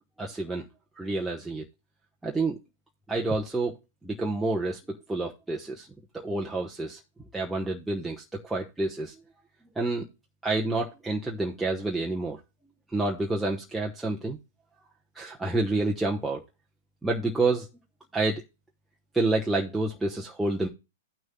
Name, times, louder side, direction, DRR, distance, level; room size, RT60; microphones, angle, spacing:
voice 1, 0.2-0.6 1.0-1.7 2.2-2.6 3.1-3.8 4.0-5.9 6.1-7.0 7.3-9.1 9.8-10.1 10.4-12.4 12.9-14.4 15.1-16.4 17.0-17.7 18.1-18.4 19.1-20.7, right 2 dB, 5° right, -1 dB, 1.0 m, -28 dB
16.0 x 6.2 x 2.2 m, 0.28 s
hypercardioid pair, 120°, 0 cm